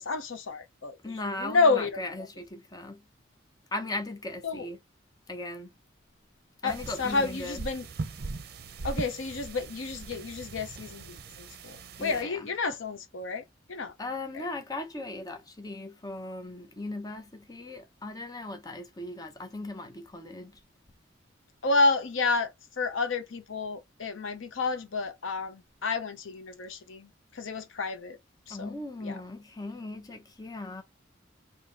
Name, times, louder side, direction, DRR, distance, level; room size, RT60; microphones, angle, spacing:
voice 1, 0.0-1.0 1.3-2.1 4.4-4.7 6.6-7.9 8.8-13.4 13.7-13.9 14.3-14.4 21.6-28.2 28.5-28.7 29.0-29.2, left 3 dB, 85° left, 0.7 m, -30 dB
voice 2, 1.0-3.0 3.7-4.8 5.3-5.7 6.6-7.6 12.0-12.5 14.0-20.6 28.5-30.8, left 2 dB, 20° left, 0.7 m, -38 dB
sound 1, 6.7-12.2, right 3 dB, 55° right, 0.6 m, -40 dB
3.3 x 2.7 x 3.7 m
head